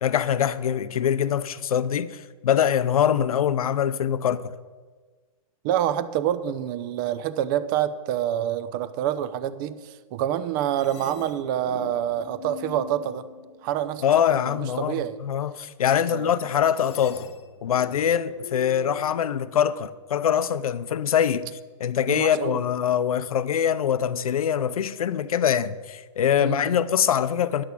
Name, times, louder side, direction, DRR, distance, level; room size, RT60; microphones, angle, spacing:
voice 1, 0.0-4.5 14.0-17.2 17.6-21.5 21.8-27.6, left 9 dB, 90° left, 0.7 m, -23 dB
voice 2, 5.6-13.2 13.6-14.1 14.3-15.2 16.1-16.3 22.1-22.6 26.4-26.7, right 11 dB, 40° right, 0.7 m, -27 dB
sound 1, 10.8-14.0 16.8-19.9, left 8 dB, 55° left, 0.8 m, -43 dB
10.5 x 6.3 x 8.3 m
hypercardioid pair, 150°, 18 cm